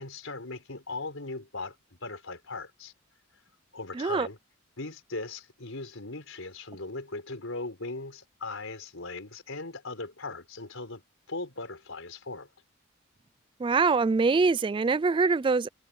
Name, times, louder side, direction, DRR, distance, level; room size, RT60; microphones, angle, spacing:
voice 1, 0.0-1.8 2.0-2.9 3.7-4.4 4.8-11.0 11.3-12.5, left 3 dB, 75° left, 4.3 m, -38 dB
voice 2, 4.0-4.3 13.6-15.7, right 4 dB, 25° right, 0.3 m, -24 dB
head